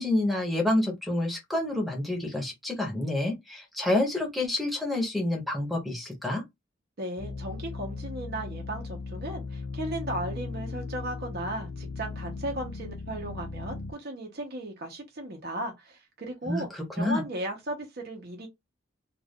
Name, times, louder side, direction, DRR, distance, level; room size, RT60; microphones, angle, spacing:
voice 1, 0.0-6.4 16.5-16.6 17.0-17.2, left 1 dB, ahead, 0.8 m, -28 dB
voice 2, 7.0-16.7 16.9-18.5, right 1 dB, 50° right, 0.8 m, -36 dB
sound 1, 7.2-13.9, left 3 dB, 75° left, 0.5 m, -37 dB
2.4 x 2.3 x 3.5 m
head